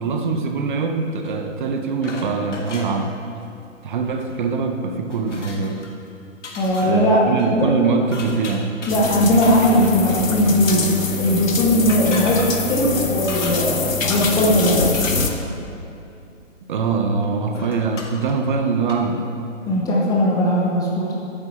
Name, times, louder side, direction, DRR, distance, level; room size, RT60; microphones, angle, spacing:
voice 1, 0.0-3.2 3.8-5.8 6.8-8.7 16.7-19.2, right 4 dB, 40° right, 5 dB, 0.9 m, -23 dB
sound 1, 1.2-1.4 2.0-3.0 4.1-4.4 4.7-4.8 5.1-5.9 6.4-7.0 7.4-7.5 8.1-10.0 10.6-10.8 11.8-13.8 14.1-15.6 17.2-17.3 17.5-18.3 18.8-18.9, left 3 dB, 65° left, 1.9 m, -35 dB
voice 2, 6.5-7.2 7.5-7.7 8.9-10.8 11.2-12.4 12.7-14.9 19.7-21.1, equal, 10° left, -4 dB, 0.8 m, -18 dB
sound 2, 8.9-15.3, left 5 dB, 85° left, 1.2 m, -24 dB
14.0 x 8.7 x 4.5 m, 2.6 s
figure-of-eight pair, 135°, 39 cm